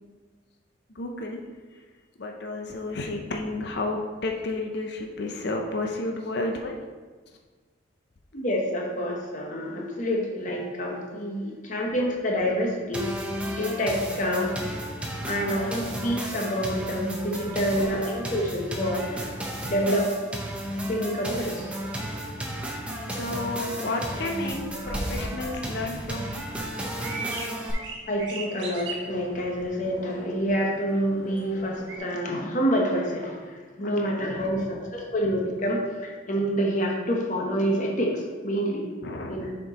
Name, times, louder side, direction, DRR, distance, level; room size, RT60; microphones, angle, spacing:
voice 1, 0.9-1.4 2.2-6.8 17.3-17.8 23.1-26.4 33.8-34.8 39.0-39.5, left 2 dB, 55° left, 2 dB, 0.6 m, -32 dB
voice 2, 8.3-13.1 13.6-14.5 15.3-19.3 19.6-20.1 20.9-21.7 28.1-33.4 33.8-38.8 39.3-39.5, equal, 40° left, 0 dB, 1.0 m, -27 dB
sound 1, 12.9-27.7, equal, 5° right, 0.7 m, -33 dB
sound 2, 24.5-32.0, right 2 dB, 65° right, 1.2 m, -39 dB
6.4 x 4.5 x 4.1 m, 1.4 s
head